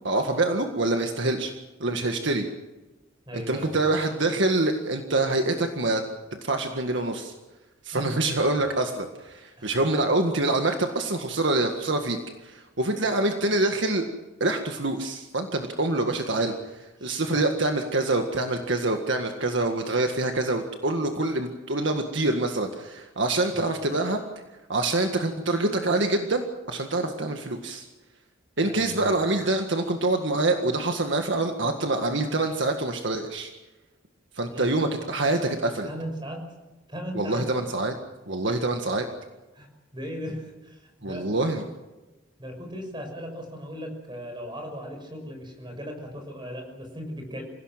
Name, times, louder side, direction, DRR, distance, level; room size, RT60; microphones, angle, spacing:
voice 1, 0.0-1.5 1.8-2.5 3.5-6.1 6.4-7.3 7.8-12.2 12.4-14.0 14.4-16.5 17.0-24.2 24.7-27.9 28.6-33.5 34.4-35.9 37.1-37.9 38.3-39.1 41.0-41.6, right 2 dB, 65° right, 4 dB, 1.8 m, -25 dB
voice 2, 3.3-3.7 7.9-8.4 9.6-9.8 16.4-16.6 17.0-17.4 23.5-24.0 25.0-25.1 28.6-29.1 34.5-34.8 35.8-36.5 36.9-37.5 39.5-39.7 39.9-41.3 42.4-47.4, equal, 25° right, 4 dB, 6.1 m, -38 dB
27.0 x 17.0 x 7.5 m, 1.1 s
head